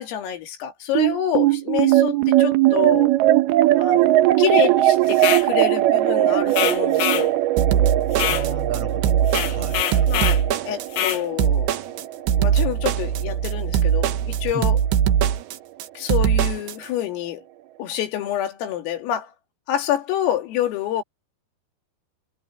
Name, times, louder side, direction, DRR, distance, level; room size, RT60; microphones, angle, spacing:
voice 1, 0.0-3.1 3.8-7.3 10.1-12.0 12.3-14.8 16.0-17.4 17.8-19.3 19.7-21.0, left 11 dB, 90° left, 5.4 m, -27 dB
sound 1, 1.0-13.6, right 15 dB, 85° right, 2.2 m, -20 dB
sound 2, 5.1-5.5 6.5-7.3 8.1-8.5 9.3-10.4 10.9-11.2, left 11 dB, 65° left, 3.0 m, -25 dB
sound 3, 7.6-16.7, right 9 dB, 65° right, 3.0 m, -21 dB
voice 2, 8.3-9.9 14.5-14.7, right 2 dB, 30° right, 7.1 m, -35 dB
omnidirectional pair, 5.8 m